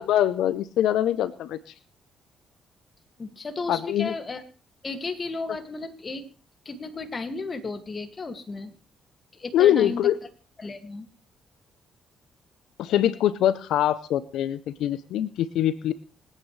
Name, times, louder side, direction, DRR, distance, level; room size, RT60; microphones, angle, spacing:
voice 1, 0.0-1.7 3.7-4.1 9.5-10.2 12.8-15.9, left 11 dB, 85° left, 15 dB, 0.6 m, -23 dB
voice 2, 3.2-4.4 4.8-6.2 6.7-8.7 9.4-10.0 10.6-11.1, left 3 dB, 35° left, 8 dB, 2.1 m, -34 dB
26.5 x 9.2 x 3.2 m, 0.35 s
cardioid pair, 90°, 0 cm